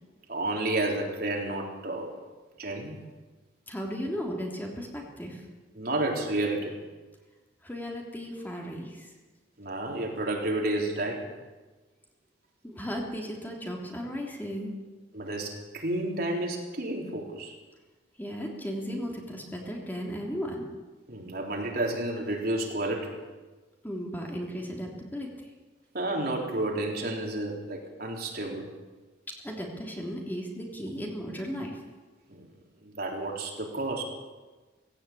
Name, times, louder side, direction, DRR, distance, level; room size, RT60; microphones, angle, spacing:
voice 1, 0.3-2.1 2.6-3.0 5.8-6.8 9.6-11.3 15.1-17.5 21.1-23.2 25.9-28.7 32.3-32.5 32.8-34.0, right 2 dB, 55° right, 1 dB, 3.8 m, -31 dB
voice 2, 3.7-5.4 7.6-9.1 12.6-14.7 18.2-20.7 23.8-25.3 29.4-31.8, equal, 10° left, -1 dB, 3.3 m, -35 dB
17.5 x 17.0 x 8.6 m, 1.2 s
head